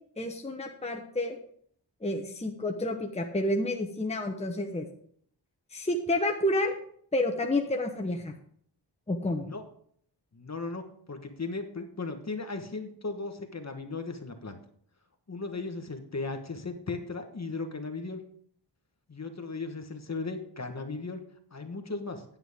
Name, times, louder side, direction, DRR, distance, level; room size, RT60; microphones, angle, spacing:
voice 1, 0.2-1.4 2.0-4.9 5.7-6.7 7.1-8.3 9.1-9.5, left 1 dB, 15° left, 3 dB, 0.9 m, -29 dB
voice 2, 10.3-14.6 15.3-18.2 19.1-21.2 21.5-22.2, left 3 dB, 40° left, 6 dB, 1.2 m, -36 dB
9.5 x 8.9 x 3.5 m, 0.62 s
wide cardioid pair, 95°, 42 cm